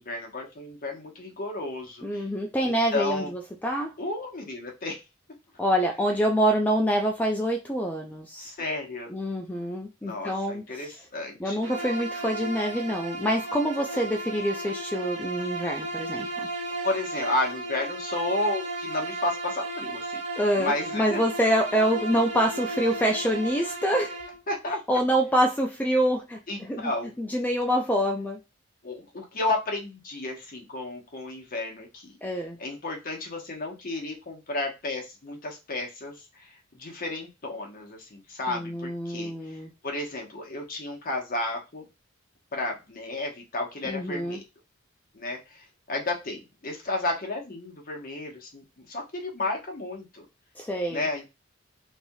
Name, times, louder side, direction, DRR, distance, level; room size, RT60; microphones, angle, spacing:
voice 1, 0.0-2.3 2.6-3.3 4.0-5.0 8.4-9.1 10.0-11.7 16.8-20.2 20.6-21.2 24.5-25.0 26.5-27.2 28.8-32.1 32.6-39.6 39.8-41.8 42.5-44.4 45.1-50.2 50.9-51.3, left 2 dB, 45° left, 1 dB, 0.9 m, -32 dB
voice 2, 2.0-3.9 5.6-8.5 9.1-10.9 11.4-16.3 20.4-24.1 24.9-26.9 27.2-28.4 32.2-32.6 38.5-39.7 43.8-44.4 50.6-51.1, equal, 10° left, 1 dB, 0.3 m, -26 dB
Bowed string instrument, 11.6-24.4, right 2 dB, 65° right, 0.9 m, -34 dB
3.3 x 2.6 x 2.2 m, 0.25 s
head